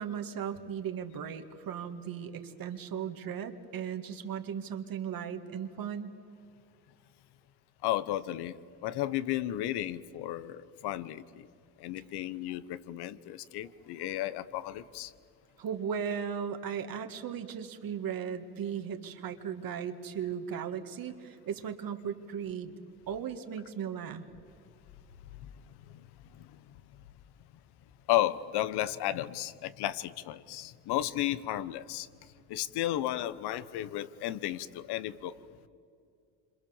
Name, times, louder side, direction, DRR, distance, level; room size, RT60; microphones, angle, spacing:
voice 1, 0.0-6.2 15.6-22.7 23.1-24.3, right 8 dB, 60° right, 6 dB, 2.1 m, -37 dB
voice 2, 7.8-8.5 8.8-11.5 11.8-15.1 25.4-25.5 25.9-26.1 26.3-26.5 28.1-32.1 32.5-35.4, left 13 dB, 75° left, 16 dB, 1.2 m, -33 dB
27.0 x 26.5 x 7.3 m, 2.4 s
supercardioid pair, 75°, 39 cm